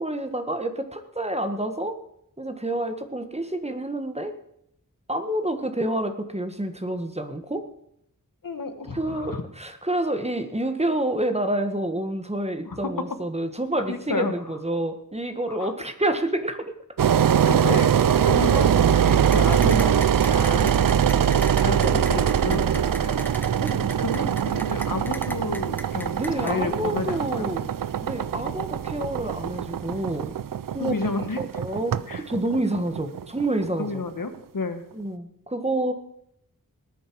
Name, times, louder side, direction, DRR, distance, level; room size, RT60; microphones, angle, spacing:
voice 1, 0.0-2.0 2.4-4.3 5.1-7.6 8.9-16.7 21.8-22.2 23.6-24.1 26.1-27.7 28.0-30.3 30.7-30.9 31.4-32.0 32.3-34.1 34.9-35.9, right 1 dB, 20° right, 7 dB, 1.5 m, -28 dB
voice 2, 8.4-9.4 12.6-12.9 13.9-14.3 15.5-15.7 17.2-23.3 24.0-27.5 30.8-31.4 32.1-32.2 33.8-34.8, left 3 dB, 75° left, 9 dB, 1.3 m, -31 dB
Engine, 17.0-33.9, right 9 dB, 75° right, 0.5 m, -22 dB
sound 1, 19.3-26.5, left 1 dB, 5° left, 1.0 m, -38 dB
19.5 x 9.3 x 4.7 m, 0.75 s
wide cardioid pair, 60°, 33 cm